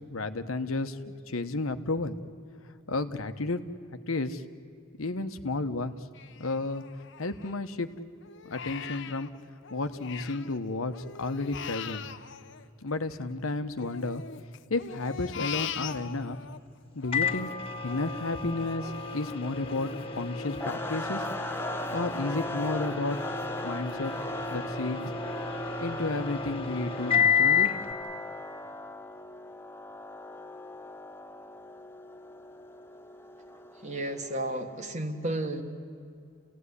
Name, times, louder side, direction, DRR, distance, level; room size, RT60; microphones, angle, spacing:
voice 1, 0.1-2.2 2.9-3.6 4.1-4.4 5.0-5.9 6.4-6.8 7.2-7.9 8.4-9.3 9.7-12.0 12.8-14.2 14.7-16.4 16.9-17.5 17.8-21.3 21.9-23.2 23.6-24.1 24.5-25.0 25.8-27.7, left 2 dB, 85° left, 9 dB, 1.2 m, -32 dB
Crying sobbing, 6.1-7.8 8.2-10.6 10.9-13.3 13.8-16.6 17.0-22.5 22.9-23.0 23.4-24.0 24.5-24.6 25.0-25.2, left 7 dB, 60° left, 0.9 m, -42 dB
Microwave oven, 17.1-27.9, left 6 dB, 25° left, 2.0 m, -31 dB
sound 1, 20.6-34.7, left 1 dB, 10° left, 0.7 m, -39 dB
voice 2, 33.8-35.6, right 1 dB, 35° right, 6 dB, 1.8 m, -32 dB
29.5 x 17.0 x 9.8 m, 2.5 s
head